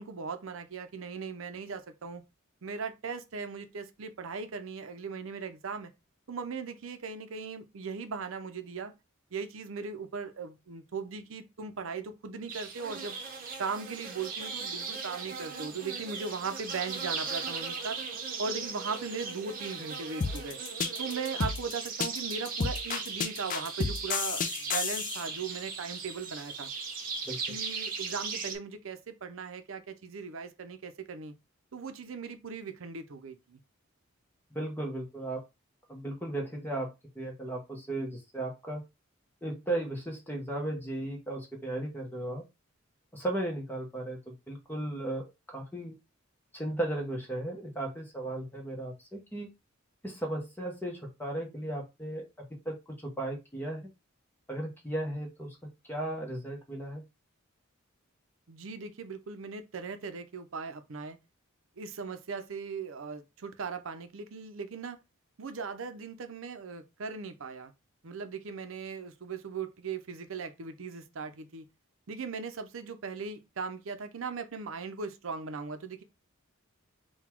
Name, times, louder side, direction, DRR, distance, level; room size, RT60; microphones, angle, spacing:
voice 1, 0.0-2.2 2.6-5.9 6.3-8.9 9.3-13.2 13.6-18.0 18.4-20.6 21.0-26.7 27.5-31.3 31.7-33.6 58.5-61.2 61.8-65.0 65.4-67.7 68.0-71.7 72.1-76.0, right 5 dB, 65° right, 0.6 m, -38 dB
sound 1, 12.5-28.5, right 5 dB, 40° right, 0.9 m, -38 dB
sound 2, 20.2-25.2, left 5 dB, 40° left, 0.4 m, -31 dB
voice 2, 34.5-35.4 35.9-38.8 39.4-42.4 43.1-45.2 45.5-45.9 46.5-49.5 50.0-52.2 52.6-53.9 54.5-55.6 55.8-57.0, right 1 dB, 10° left, 0.9 m, -35 dB
4.0 x 2.3 x 4.3 m
head